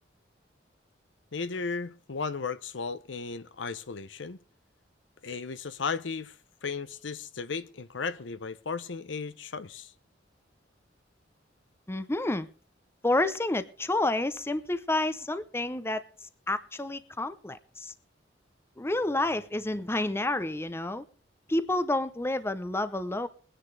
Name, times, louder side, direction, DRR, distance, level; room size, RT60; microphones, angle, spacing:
voice 1, 1.3-4.4 5.2-6.3 6.6-9.9, left 5 dB, 80° left, 0.8 m, -35 dB
voice 2, 11.9-12.5 13.0-16.0 16.5-17.9 18.8-21.0 21.5-23.3, left 2 dB, 15° left, 0.7 m, -29 dB
23.0 x 10.0 x 3.3 m
head